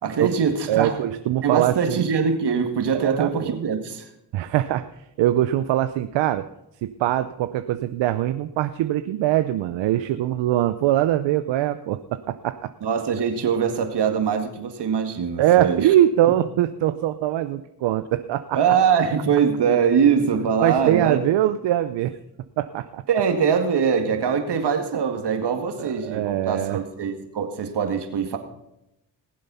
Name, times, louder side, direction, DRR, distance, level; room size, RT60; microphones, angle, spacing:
voice 1, 0.0-1.0 1.4-4.1 12.8-15.9 18.5-21.2 23.1-28.4, right 7 dB, 65° right, 6 dB, 2.1 m, -22 dB
voice 2, 0.7-2.0 2.9-3.5 4.3-6.5 6.8-12.7 15.4-18.6 20.6-22.2 22.6-23.0 25.8-26.8, right 13 dB, 85° right, 11 dB, 0.7 m, -22 dB
19.5 x 7.7 x 5.6 m, 0.86 s
cardioid pair, 70°, 43 cm